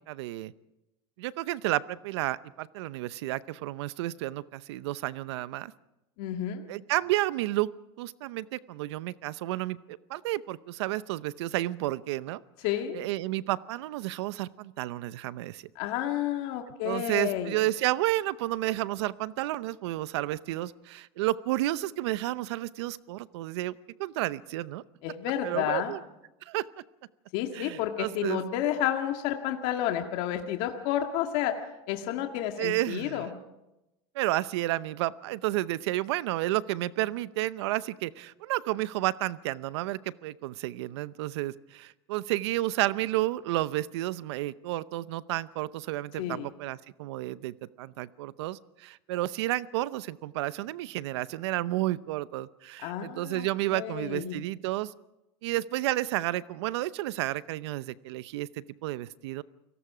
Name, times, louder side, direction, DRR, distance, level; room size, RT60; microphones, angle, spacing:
voice 1, 0.1-0.5 1.2-5.7 6.7-7.7 8.0-12.4 12.9-15.6 16.8-24.8 25.4-26.0 26.5-26.7 27.5-28.5 32.6-33.3 34.1-54.9 55.4-59.4, right 16 dB, 75° right, 17 dB, 0.7 m, -31 dB
voice 2, 6.2-6.6 12.6-13.0 15.8-17.6 25.0-25.9 27.3-31.5 31.9-33.3 46.2-46.5 52.8-53.5 53.7-54.4, left 11 dB, 60° left, 4 dB, 1.8 m, -30 dB
29.5 x 18.5 x 5.0 m, 0.93 s
supercardioid pair, 125°, 14 cm